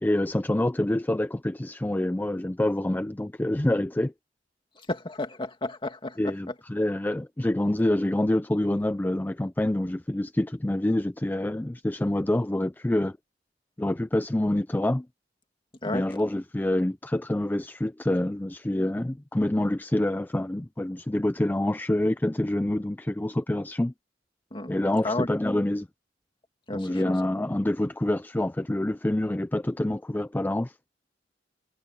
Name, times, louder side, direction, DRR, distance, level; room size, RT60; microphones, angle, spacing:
voice 1, 0.0-4.1 6.2-13.2 13.8-15.1 15.9-23.9 24.7-25.9 26.7-30.7, left 1 dB, 10° left, 0.4 m, -26 dB
voice 2, 4.9-6.3 15.8-16.1 24.5-24.7 25.0-25.3 26.7-27.1, left 2 dB, 30° left, 2.5 m, -32 dB
head